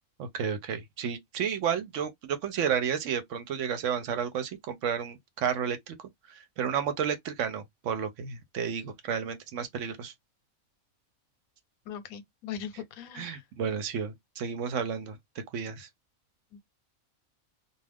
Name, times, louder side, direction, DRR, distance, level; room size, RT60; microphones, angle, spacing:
voice 1, 0.2-6.0 6.6-10.1 13.2-15.2 15.5-15.9, right 7 dB, 65° right, 0.9 m, -31 dB
voice 2, 11.9-13.4 16.5-16.6, left 8 dB, 80° left, 1.1 m, -40 dB
2.4 x 2.3 x 3.4 m
omnidirectional pair, 1.5 m